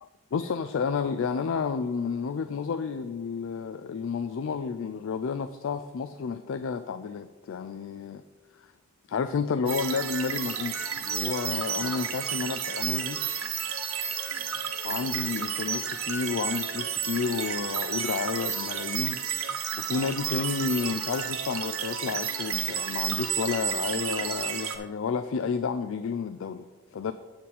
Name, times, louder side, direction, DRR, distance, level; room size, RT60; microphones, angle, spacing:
voice 1, 0.0-8.2 8.6-8.7 9.1-13.2 14.8-19.2 19.8-27.1, left 5 dB, 65° left, 11 dB, 0.3 m, -31 dB
sound 1, 9.7-24.8, right 8 dB, 75° right, 1.0 m, -31 dB
8.5 x 7.5 x 4.1 m, 1.3 s
head